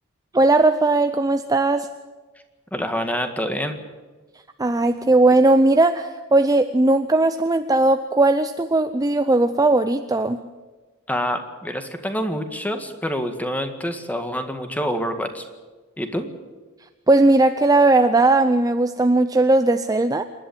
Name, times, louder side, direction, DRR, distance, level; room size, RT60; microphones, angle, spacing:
voice 1, 0.3-1.9 4.6-10.4 17.1-20.2, right 2 dB, 15° right, 9 dB, 0.6 m, -18 dB
voice 2, 2.7-3.8 11.1-15.4 16.0-16.3, equal, 5° left, 7 dB, 1.8 m, -26 dB
27.0 x 11.5 x 8.6 m, 1.3 s
head